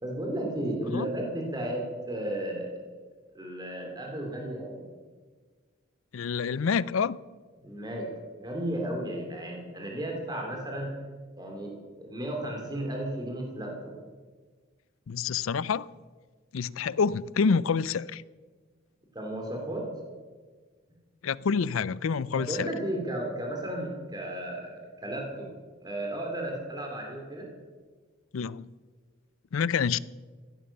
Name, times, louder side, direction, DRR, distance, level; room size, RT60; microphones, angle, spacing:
voice 1, 0.0-2.7 3.3-4.9 7.6-8.1 8.4-11.0 11.4-13.9 19.1-19.9 22.3-25.5 25.8-27.5, right 1 dB, 20° right, 2.7 m, -34 dB
voice 2, 6.1-7.2 15.1-15.9 16.5-18.2 21.2-22.7 28.3-28.7 29.5-30.0, left 5 dB, 75° left, 0.4 m, -27 dB
15.5 x 10.0 x 7.1 m
head